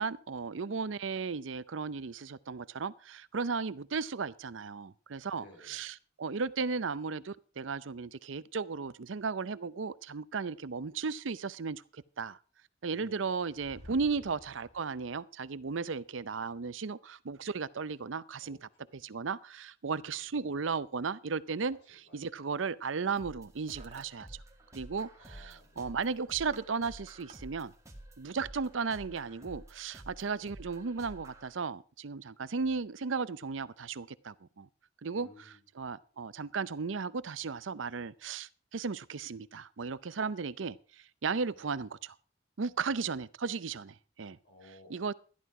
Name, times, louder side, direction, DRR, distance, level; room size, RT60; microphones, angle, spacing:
voice 1, 0.0-12.4 12.8-18.6 18.9-24.4 24.7-27.7 28.2-34.7 35.0-35.3 35.8-40.8 41.2-42.1 42.6-44.4 44.9-45.1, right 5 dB, 80° right, 0.6 m, -35 dB
voice 2, 5.2-5.8 12.9-13.3 14.1-14.3 18.4-19.2 20.0-20.1 21.7-21.8 22.1-22.5 25.2-26.0 30.2-30.5 35.1-35.6 44.4-45.2, left 1 dB, 65° left, 5.5 m, -58 dB
sound 1, 13.5-15.1, left 1 dB, 35° left, 2.4 m, -53 dB
Hammer, 21.8-22.0 22.8-23.1 23.3-24.3 24.6-25.1 25.4-25.7 26.1-27.4, right 5 dB, 35° right, 1.4 m, -58 dB
sound 2, 23.2-31.5, right 1 dB, 15° right, 2.2 m, -51 dB
14.0 x 11.0 x 4.8 m
head